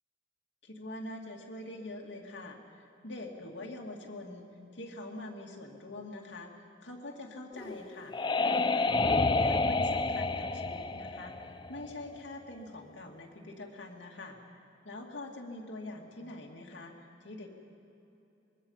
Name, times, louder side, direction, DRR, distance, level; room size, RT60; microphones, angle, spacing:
voice 1, 0.6-4.5 4.7-11.3 11.7-14.4 14.8-17.5, left 2 dB, 70° left, 0 dB, 2.3 m, -44 dB
sound 1, 7.6-12.2, left 3 dB, 25° left, 0.5 m, -29 dB
25.0 x 21.5 x 5.7 m, 2.9 s
head